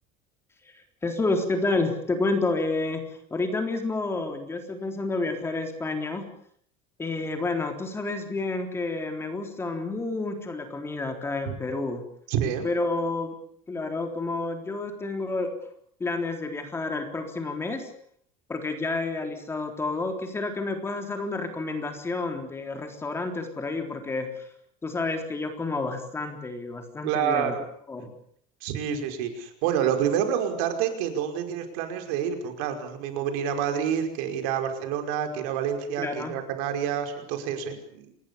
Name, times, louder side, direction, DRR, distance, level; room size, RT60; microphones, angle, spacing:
voice 1, 0.7-6.3 7.0-12.0 12.6-13.4 13.7-15.5 16.0-17.9 18.5-24.5 24.8-27.6 27.9-28.1 36.0-36.3, left 3 dB, 15° left, 5 dB, 3.8 m, -30 dB
voice 2, 12.3-12.7 27.0-27.6 28.6-38.2, right 8 dB, 80° right, 6 dB, 5.3 m, -28 dB
27.0 x 20.0 x 7.1 m, 0.64 s
cardioid pair, 155°, 17 cm